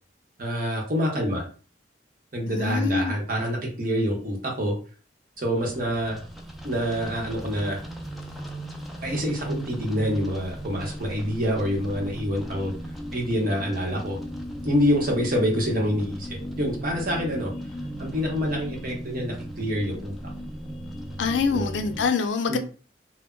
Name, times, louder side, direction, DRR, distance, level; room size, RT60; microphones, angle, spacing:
voice 1, 0.4-1.4 2.3-4.7 5.4-6.2 6.6-7.8 9.0-12.7 13.1-14.2 14.6-17.5 18.0-20.1 21.4-21.7 22.5-22.6, equal, 50° right, 0.8 m, -26 dB
voice 2, 2.5-3.1 21.2-22.6, left 5 dB, 85° left, 0.4 m, -25 dB
sound 1, 5.5-22.1, equal, ahead, 0.3 m, -37 dB
2.1 x 2.1 x 3.6 m
head